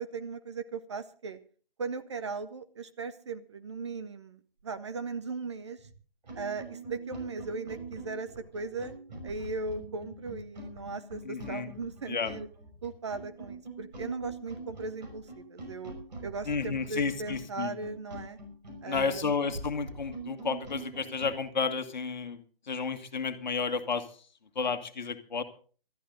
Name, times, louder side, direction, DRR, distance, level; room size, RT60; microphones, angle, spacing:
voice 1, 0.0-1.4 1.8-5.8 6.3-8.9 9.2-12.5 12.8-16.0 16.2-18.4 18.8-19.2, right 4 dB, 30° right, 11 dB, 0.8 m, -38 dB
sound 1, 5.8-5.9 6.2-21.4, right 2 dB, 50° right, 5.8 m, -43 dB
voice 2, 11.2-11.7 12.1-12.3 16.4-17.7 18.8-22.4 22.7-24.0 24.5-25.4, left 5 dB, 50° left, 9 dB, 1.7 m, -32 dB
19.5 x 13.0 x 3.8 m, 0.40 s
figure-of-eight pair, 150°, 29 cm